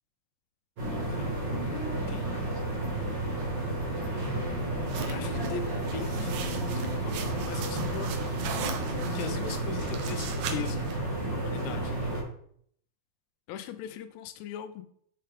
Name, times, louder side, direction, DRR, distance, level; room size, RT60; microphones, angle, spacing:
sound 1, 0.8-12.2, right 1 dB, 50° right, 1.3 m, -31 dB
voice 1, 0.9-2.3 4.6-5.6 5.9-8.1 9.1-10.9 11.3-12.0 13.5-14.8, left 9 dB, 90° left, 9 dB, 2.8 m, -40 dB
sound 2, 4.9-10.9, right 8 dB, 80° right, 2.6 m, -40 dB
6.7 x 5.6 x 3.4 m, 0.64 s
omnidirectional pair, 4.9 m